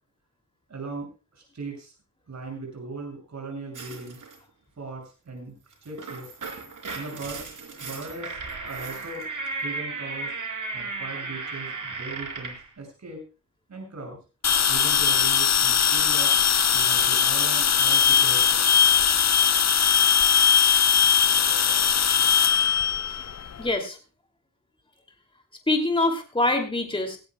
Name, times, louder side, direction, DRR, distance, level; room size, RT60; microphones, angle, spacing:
voice 1, 0.7-1.9 2.3-4.2 4.8-5.5 5.8-6.3 6.9-7.4 7.8-8.4 8.6-9.2 9.6-10.3 10.7-13.2 13.7-14.2 14.7-16.3 16.7-18.7, right 3 dB, 60° right, 1 dB, 6.8 m, -38 dB
sound 1, 3.7-4.4 5.7-12.7, right 3 dB, 75° right, 4.3 m, -35 dB
sound 2, 14.4-23.7, left 7 dB, 55° left, 0.7 m, -20 dB
voice 2, 23.0-23.3 23.6-24.0 25.7-27.2, left 2 dB, 15° left, 4 dB, 2.7 m, -25 dB
18.0 x 17.5 x 2.3 m, 0.33 s
wide cardioid pair, 150°, 31 cm